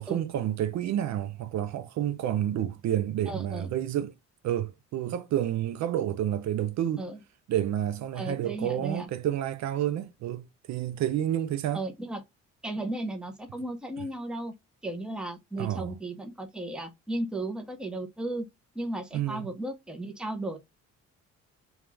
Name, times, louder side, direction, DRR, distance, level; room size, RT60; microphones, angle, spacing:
voice 1, 0.0-4.1 4.4-7.1 7.5-11.8 15.6-15.9 19.1-19.5, right 11 dB, 65° right, 0.4 m, -29 dB
voice 2, 3.3-3.7 7.0-7.2 8.1-9.1 11.7-12.2 12.6-14.5 14.8-18.5 18.7-20.6, right 1 dB, 5° right, 0.6 m, -35 dB
2.4 x 2.3 x 3.1 m
cardioid pair, 90°, 30 cm